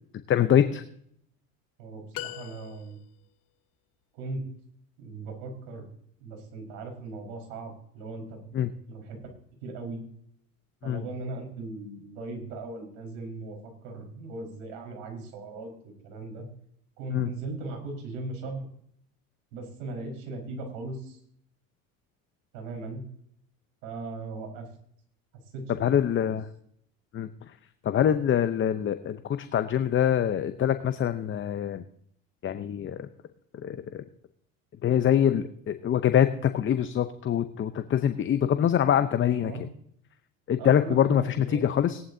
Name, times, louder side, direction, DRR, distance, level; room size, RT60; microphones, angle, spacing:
voice 1, 0.3-0.8 8.5-8.7 10.8-11.0 17.1-17.3 25.8-26.4 27.1-27.3 27.8-31.8 32.4-33.1 33.6-34.0 34.8-39.5 40.5-42.0, left 9 dB, 30° left, 10 dB, 0.8 m, -24 dB
voice 2, 1.8-3.0 4.1-4.4 5.0-5.9 6.2-8.5 8.9-9.2 9.6-10.0 10.8-16.5 17.0-18.6 19.5-21.2 22.5-23.0 23.8-24.7 25.5-25.6 25.9-26.3 39.4-39.6 40.6-41.7, right 2 dB, 70° right, 3 dB, 4.9 m, -38 dB
sound 1, 2.1-3.3, left 18 dB, 55° left, 0.9 m, -40 dB
17.5 x 11.0 x 2.7 m, 0.66 s
hypercardioid pair, 85°, 41 cm